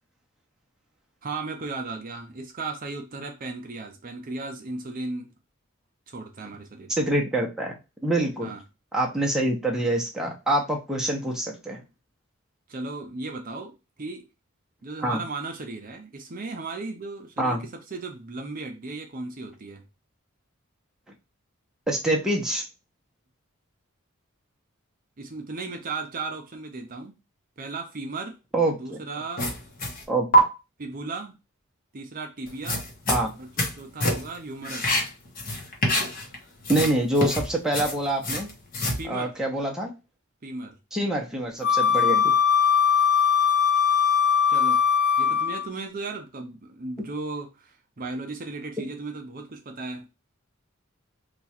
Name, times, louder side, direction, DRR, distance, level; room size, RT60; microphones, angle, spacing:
voice 1, 1.2-5.4 6.1-7.1 8.4-8.6 12.7-14.2 14.8-19.8 25.2-27.1 27.6-28.4 28.8-29.4 30.8-31.4 31.9-32.8 33.4-33.5 33.7-35.0 38.9-39.3 40.4-40.8 44.5-44.8 45.2-50.1, right 3 dB, 40° right, 0.6 m, -36 dB
voice 2, 6.9-8.5 8.9-11.8 15.0-15.2 17.4-17.6 21.9-22.6 28.5-29.0 30.1-30.4 33.1-33.3 36.7-38.5 39.1-39.9 40.9-42.3, right 1 dB, 5° right, 0.7 m, -26 dB
sound 1, 29.4-30.0 30.3-30.4 32.5-33.7 34.0-34.4 34.6-36.4 36.6-39.0, equal, 40° left, 0.9 m, -25 dB
Wind instrument woodwind instrument, 41.6-45.7, left 7 dB, 80° left, 0.5 m, -20 dB
3.0 x 2.4 x 4.2 m
head